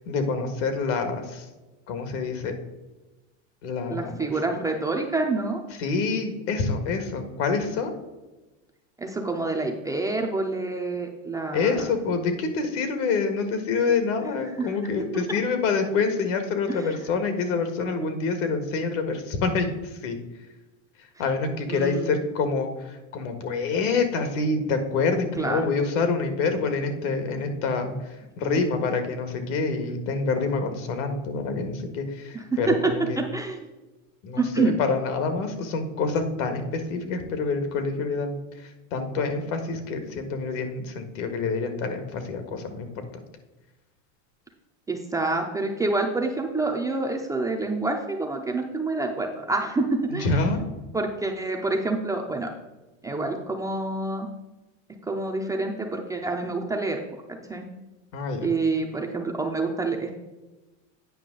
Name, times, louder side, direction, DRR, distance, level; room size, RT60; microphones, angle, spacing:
voice 1, 0.1-1.5 1.9-2.6 3.6-4.3 5.8-8.0 11.5-20.2 21.2-33.2 34.2-42.9 50.2-50.6 58.1-58.5, left 4 dB, 70° left, 8 dB, 1.7 m, -27 dB
voice 2, 3.9-5.6 9.0-11.9 14.6-14.8 16.7-17.0 21.7-22.1 25.4-25.6 32.3-33.7 34.4-34.8 44.9-49.8 50.1-50.3 50.9-52.5 53.0-54.3 55.0-57.0 57.5-57.7 58.4-60.1, right 3 dB, 10° right, 1 dB, 0.4 m, -27 dB
9.1 x 5.5 x 3.8 m, 1.1 s
supercardioid pair, 140°, 38 cm